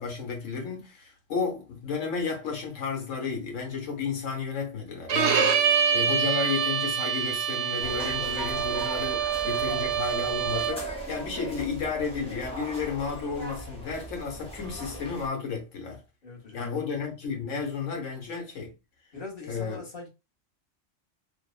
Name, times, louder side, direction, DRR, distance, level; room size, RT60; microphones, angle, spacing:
voice 1, 0.0-16.0 16.5-18.7 19.5-19.8, left 5 dB, 85° left, 1.2 m, -32 dB
Bowed string instrument, 5.1-10.9, right 7 dB, 70° right, 0.8 m, -26 dB
sound 1, 7.8-15.3, equal, 5° left, 0.6 m, -39 dB
voice 2, 16.2-16.8 19.1-20.1, left 3 dB, 45° left, 1.0 m, -42 dB
2.8 x 2.0 x 2.3 m
omnidirectional pair, 1.3 m